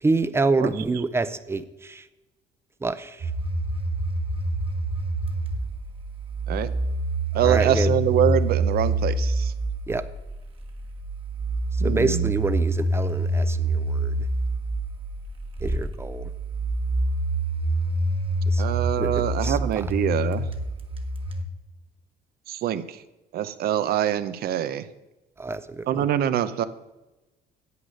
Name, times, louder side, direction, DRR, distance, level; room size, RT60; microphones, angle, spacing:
voice 1, 0.0-2.1 2.8-3.3 7.3-7.9 9.9-10.0 11.7-14.2 15.6-16.3 18.5-18.6 19.0-19.8 25.4-26.1, right 3 dB, 15° right, 13 dB, 0.6 m, -27 dB
sound 1, 3.2-21.4, right 1 dB, 30° right, 1.3 m, -26 dB
voice 2, 7.3-9.5 11.8-12.3 18.6-20.5 22.5-23.0 23.3-24.8 25.9-26.6, right 10 dB, 65° right, 13 dB, 0.8 m, -24 dB
9.5 x 8.1 x 6.5 m, 1.0 s
cardioid pair, 110°, 17 cm